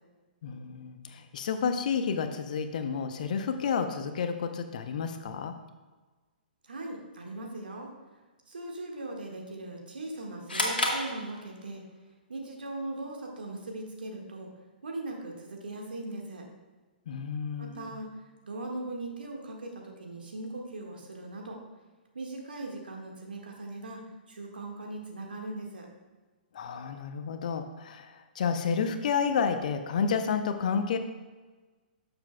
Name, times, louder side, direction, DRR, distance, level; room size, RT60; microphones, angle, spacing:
voice 1, 0.4-5.5 17.1-17.9 26.5-31.0, left 6 dB, 50° left, 8 dB, 0.7 m, -30 dB
voice 2, 6.6-7.9 8.5-11.8 12.3-14.5 14.8-16.4 17.6-18.1 18.4-21.6 22.1-25.9, right 2 dB, 70° right, 0 dB, 1.6 m, -39 dB
sound 1, 10.5-11.9, left 1 dB, 75° left, 1.5 m, -31 dB
11.5 x 6.9 x 2.3 m, 1.3 s
figure-of-eight pair, 120°, 5 cm